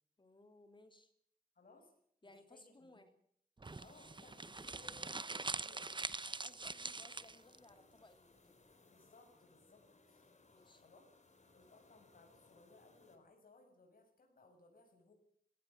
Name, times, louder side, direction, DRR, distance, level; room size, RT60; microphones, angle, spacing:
voice 1, 0.2-1.1 2.2-3.1 6.4-8.6 10.5-10.8, left 2 dB, 35° left, 7 dB, 2.9 m, -62 dB
voice 2, 1.5-1.9 2.3-3.0 3.8-5.9 8.9-10.3 10.8-11.1 11.5-15.1, left 3 dB, 75° left, 2 dB, 6.5 m, -63 dB
sound 1, 3.6-13.2, left 3 dB, 55° left, 4.0 m, -67 dB
sound 2, 3.6-7.6, right 3 dB, 35° right, 0.9 m, -43 dB
19.5 x 18.0 x 8.8 m, 0.66 s
cardioid pair, 55°, 15 cm